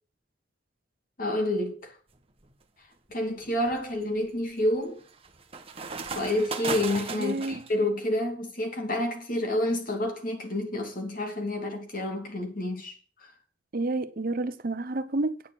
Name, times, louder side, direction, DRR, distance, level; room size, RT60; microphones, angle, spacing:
voice 1, 1.2-2.0 3.1-5.0 6.1-13.3, left 1 dB, 45° left, 2.5 m, -29 dB
sound 1, 2.2-2.5 3.1-7.7, right 4 dB, 30° right, 1.1 m, -37 dB
voice 2, 7.2-7.6 13.7-15.4, right 2 dB, 50° right, 0.8 m, -30 dB
9.2 x 6.6 x 7.5 m
head